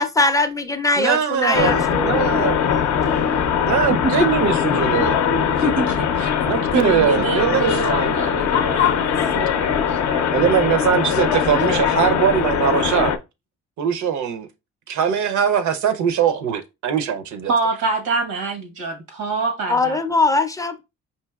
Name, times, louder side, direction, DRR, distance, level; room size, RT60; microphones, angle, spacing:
voice 1, 0.0-2.3 19.7-20.8, left 3 dB, 10° left, 0.4 m, -21 dB
voice 2, 1.0-2.6 3.7-5.2 5.4-5.5 6.5-8.1 10.3-13.1 13.8-14.5 14.9-17.5, right 7 dB, 70° right, 0.6 m, -21 dB
sound 1, 1.5-13.2, left 7 dB, 60° left, 0.5 m, -21 dB
voice 3, 5.6-10.4 11.5-11.9 17.5-20.0, right 3 dB, 85° right, 1.1 m, -26 dB
4.5 x 2.7 x 2.3 m
cardioid pair, 90°, 30 cm